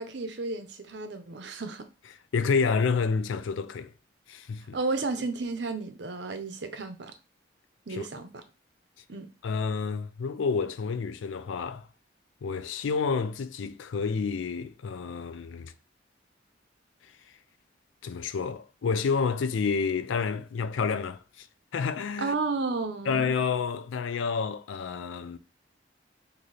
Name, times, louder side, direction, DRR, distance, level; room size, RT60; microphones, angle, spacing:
voice 1, 0.0-1.9 4.7-7.1 7.9-8.4 9.1-9.3 22.2-23.3, right 3 dB, 65° right, 0.6 m, -32 dB
voice 2, 2.3-3.9 4.3-4.8 7.9-8.0 9.4-11.9 12.4-15.7 18.0-21.5 21.7-22.3 23.1-25.4, left 5 dB, 85° left, 0.4 m, -29 dB
3.2 x 2.7 x 4.0 m
head